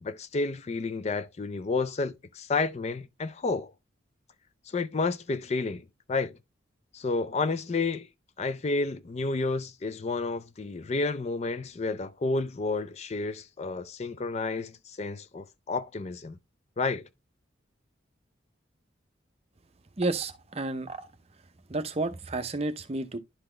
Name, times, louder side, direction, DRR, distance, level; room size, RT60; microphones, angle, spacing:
voice 1, 0.0-3.7 4.7-6.4 6.9-8.1 8.4-16.4 16.8-17.1, left 3 dB, 35° left, 0.4 m, -31 dB
voice 2, 20.0-21.1 21.7-23.2, right 2 dB, 30° right, 0.6 m, -31 dB
11.0 x 4.0 x 3.1 m
head